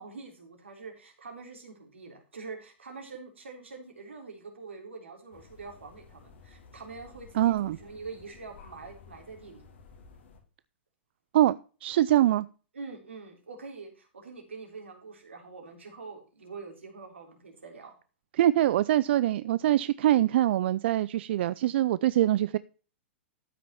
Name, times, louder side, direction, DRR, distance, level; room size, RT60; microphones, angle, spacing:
voice 1, 0.0-9.6 12.7-17.9, right 4 dB, 90° right, 3.4 m, -45 dB
sound 1, 5.3-10.4, left 5 dB, 75° left, 3.4 m, -54 dB
voice 2, 7.3-7.8 11.3-12.5 18.3-22.6, right 13 dB, 65° right, 0.4 m, -24 dB
13.0 x 6.2 x 4.3 m
hypercardioid pair, 115°, 6 cm